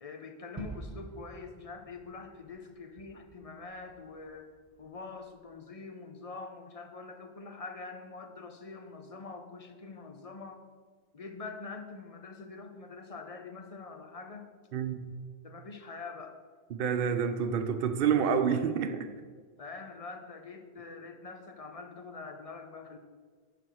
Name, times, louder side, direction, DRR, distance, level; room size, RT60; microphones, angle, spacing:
voice 1, 0.0-4.5 4.8-10.6 11.1-14.5 15.4-16.4 19.6-23.0, left 4 dB, 40° left, 5 dB, 0.6 m, -45 dB
Gunshot gunfire / Fireworks / Boom, 0.6-5.4, right 2 dB, 25° right, 0.5 m, -48 dB
voice 2, 16.7-19.1, right 7 dB, 65° right, 7 dB, 0.7 m, -28 dB
10.0 x 3.4 x 6.2 m, 1.5 s
omnidirectional pair, 1.1 m